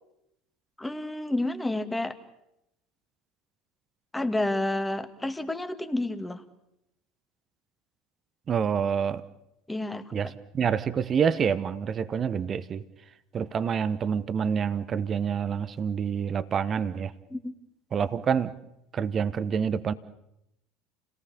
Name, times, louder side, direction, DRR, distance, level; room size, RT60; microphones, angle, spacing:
voice 1, 0.8-2.2 4.1-6.4 9.7-10.3 17.3-17.5, left 1 dB, 10° left, 8 dB, 2.0 m, -30 dB
voice 2, 8.5-9.2 10.1-12.8 13.3-17.1 17.9-18.5 18.9-19.9, right 7 dB, 35° right, 15 dB, 1.1 m, -27 dB
29.5 x 18.5 x 7.1 m, 0.84 s
figure-of-eight pair, 70°, 0 cm